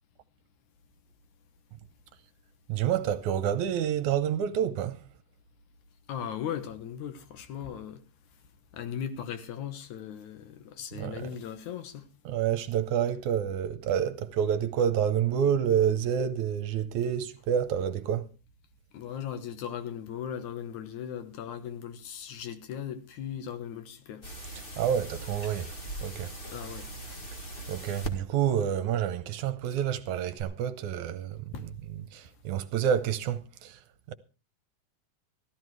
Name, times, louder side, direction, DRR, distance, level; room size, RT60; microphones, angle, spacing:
voice 1, 2.7-5.0 10.9-11.3 12.3-18.3 24.6-25.7 26.0-26.3 27.7-33.8 34.1-34.2, right 9 dB, 75° right, 2.2 m, -28 dB
voice 2, 6.1-8.0 8.7-12.1 18.9-24.2 26.5-26.9 31.5-31.6, left 9 dB, 70° left, 2.5 m, -38 dB
sound 1, 24.2-28.1 30.4-30.5, right 1 dB, 25° left, 1.4 m, -40 dB
14.5 x 13.0 x 4.7 m
omnidirectional pair, 3.6 m